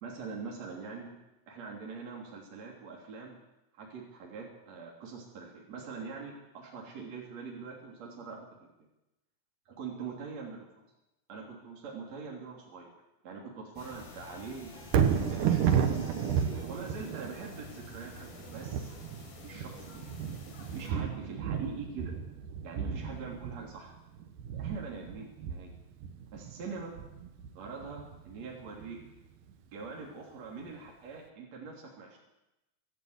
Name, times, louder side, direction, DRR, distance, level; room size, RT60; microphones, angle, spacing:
voice 1, 0.0-1.2 1.5-3.4 3.7-8.5 9.7-10.6 11.3-12.9 13.2-14.8 15.1-15.9 16.6-18.9 19.4-20.1 20.7-22.1 22.6-24.0 24.5-25.7 26.3-26.9 27.6-29.0 29.7-32.2, right 5 dB, 50° right, -2 dB, 4.2 m, -43 dB
sound 1, 13.8-20.9, left 3 dB, 90° left, 5.4 m, -49 dB
Thunder, 14.8-29.0 29.5-29.6, right 8 dB, 70° right, 2.7 m, -33 dB
26.0 x 12.5 x 8.2 m, 0.97 s
omnidirectional pair, 4.0 m